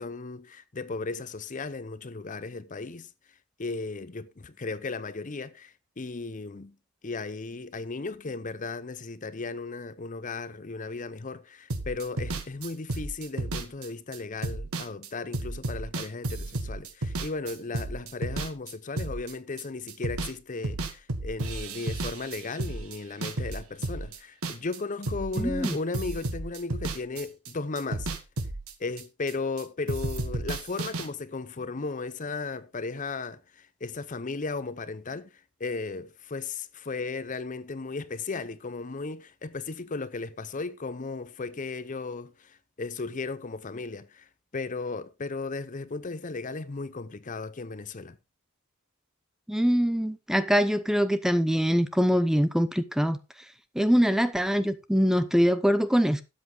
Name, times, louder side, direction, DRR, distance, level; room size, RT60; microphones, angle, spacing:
voice 1, 0.0-3.1 3.6-6.7 7.0-28.1 28.8-44.3 44.5-48.2, left 3 dB, 35° left, 0.6 m, -35 dB
sound 1, 11.7-19.6 19.9-20.4 20.6-24.8 25.0-29.6 29.9-31.1, right 2 dB, 80° right, 1.8 m, -33 dB
voice 2, 25.4-25.8 49.5-53.2 53.7-56.2, equal, ahead, 0.7 m, -23 dB
12.5 x 8.3 x 3.8 m
head